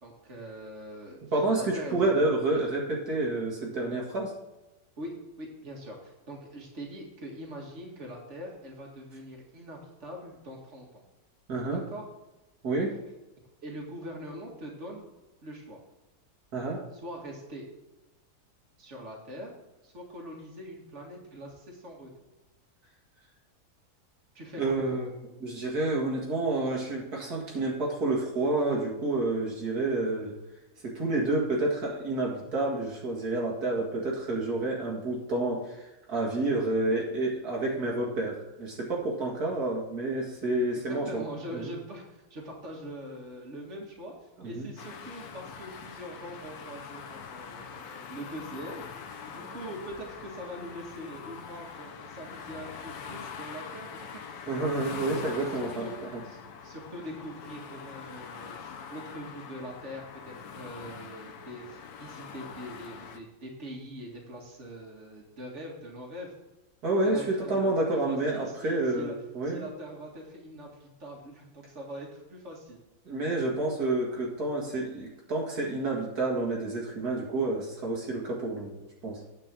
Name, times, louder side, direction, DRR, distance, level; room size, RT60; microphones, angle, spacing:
voice 1, 0.0-1.2 1.5-2.6 5.0-11.0 11.7-12.1 13.6-15.1 15.4-15.8 16.9-17.7 18.8-19.5 19.8-22.3 24.3-24.6 24.9-25.0 36.9-37.1 40.7-48.9 49.3-54.4 54.8-55.9 56.2-66.3 67.0-69.1 69.4-72.8, equal, 45° right, -1 dB, 2.3 m, -43 dB
voice 2, 1.3-4.3 11.5-11.8 12.6-13.0 16.5-16.8 24.6-25.1 25.4-30.3 30.8-35.8 36.1-41.2 41.5-41.7 44.4-44.7 54.5-56.1 66.8-69.7 73.1-79.2, right 2 dB, 70° right, -3 dB, 2.4 m, -29 dB
sound 1, 44.8-63.2, left 6 dB, 75° left, 1.4 m, -43 dB
9.3 x 5.4 x 7.5 m, 1.0 s
omnidirectional pair, 1.7 m